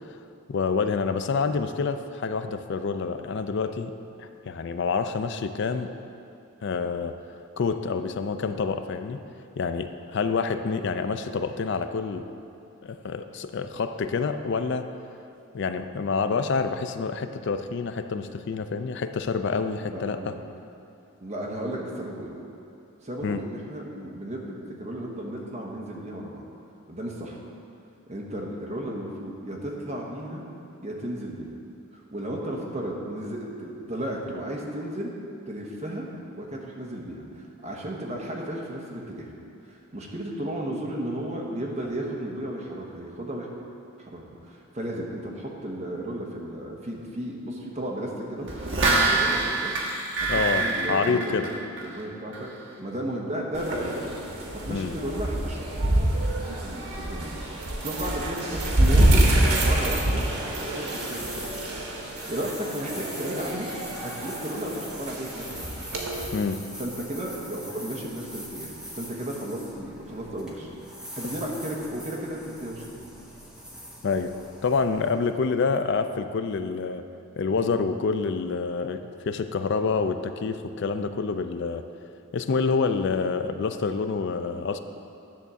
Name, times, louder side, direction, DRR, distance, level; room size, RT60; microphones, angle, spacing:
voice 1, 0.5-3.9 4.2-5.9 6.6-7.2 7.6-9.2 9.6-12.3 12.8-14.9 15.5-20.3 23.2-23.4 50.3-51.5 54.7-54.9 66.3-66.7 74.0-74.4 74.6-77.0 77.4-81.8 82.3-84.8, left 4 dB, 50° left, 9 dB, 0.4 m, -27 dB
voice 2, 19.9-20.4 21.2-22.3 23.0-26.4 26.9-27.4 28.1-30.4 30.8-31.5 31.9-35.1 35.5-36.1 36.4-39.3 39.6-43.5 44.0-48.5 48.8-49.7 50.2-52.5 52.8-54.0 54.3-55.6 56.6-59.3 59.6-60.2 60.5-61.7 62.3-63.7 64.0-65.9 66.8-73.1 84.5-84.6, right 1 dB, 30° right, -2 dB, 1.0 m, -34 dB
sound 1, 48.5-52.0 52.3-52.4, right 3 dB, 55° right, 1.4 m, -25 dB
sound 2, 53.5-66.3, right 1 dB, 85° right, 1.3 m, -26 dB
sound 3, 59.4-75.6, equal, 5° right, 0.9 m, -42 dB
10.5 x 3.6 x 6.9 m, 2.7 s
head